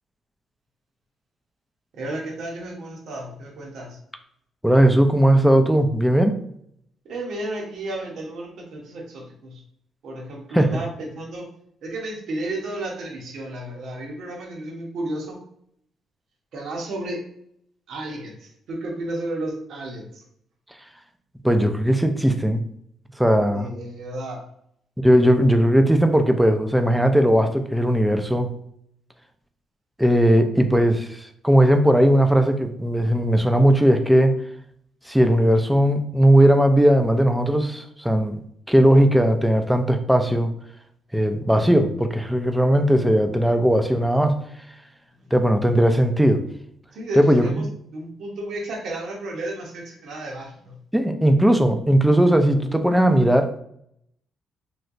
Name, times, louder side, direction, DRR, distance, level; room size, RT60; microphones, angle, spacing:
voice 1, 1.9-4.0 7.0-9.6 10.0-11.5 11.8-15.4 16.5-17.2 17.9-20.2 23.5-24.4 45.2-45.3 46.9-47.7 47.9-50.8, right 1 dB, 70° right, 0 dB, 1.0 m, -33 dB
voice 2, 4.6-6.4 10.5-10.7 21.4-22.6 23.2-23.7 25.0-28.5 30.0-34.3 35.1-38.4 38.7-40.5 41.1-44.4 45.3-46.4 47.2-47.6 50.9-53.6, right 1 dB, 5° right, 6 dB, 0.4 m, -18 dB
3.2 x 2.8 x 2.6 m, 0.68 s
cardioid pair, 90°, 0 cm